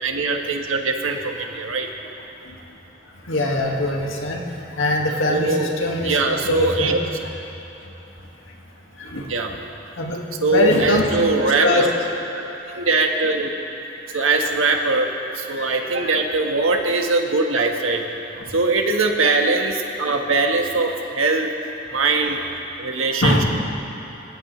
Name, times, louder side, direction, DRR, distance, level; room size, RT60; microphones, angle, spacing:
voice 1, 0.0-1.9 5.3-5.7 6.0-7.0 9.3-9.5 10.4-11.9 12.6-13.5 14.1-15.1 15.3-18.0 18.5-21.5 21.9-22.4 22.8-23.4, right 3 dB, 90° right, 2 dB, 1.6 m, -21 dB
voice 2, 3.1-7.0 7.8-8.0 8.5-8.6 8.9-9.3 10.0-11.2 11.6-11.9 12.7-12.9 14.1-14.4 15.5-16.1 18.4-18.5 21.3-21.4 23.1-23.4, left 1 dB, 80° left, 0 dB, 2.1 m, -23 dB
26.0 x 16.0 x 3.3 m, 3.0 s
head